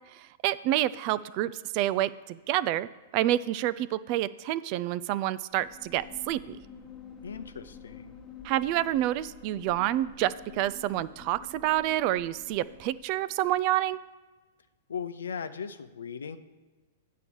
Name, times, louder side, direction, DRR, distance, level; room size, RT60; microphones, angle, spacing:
voice 1, 0.4-2.9 3.1-6.6 8.4-14.0, right 14 dB, 45° right, 18 dB, 0.3 m, -28 dB
sound 1, 5.5-13.3, left 6 dB, 20° left, 1.2 m, -49 dB
voice 2, 7.2-8.2 14.9-16.4, left 7 dB, 80° left, 11 dB, 0.6 m, -38 dB
8.4 x 4.6 x 7.0 m, 1.3 s
hypercardioid pair, 110°, 0 cm